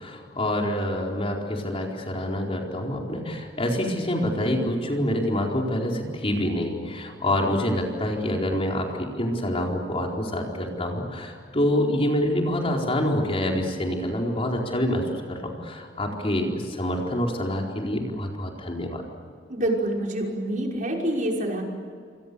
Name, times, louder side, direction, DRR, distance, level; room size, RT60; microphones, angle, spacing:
voice 1, 0.0-19.0, left 1 dB, 35° left, 0 dB, 4.5 m, -26 dB
voice 2, 19.5-21.6, right 1 dB, 45° right, 0 dB, 5.7 m, -26 dB
28.0 x 27.0 x 7.0 m, 2.2 s
head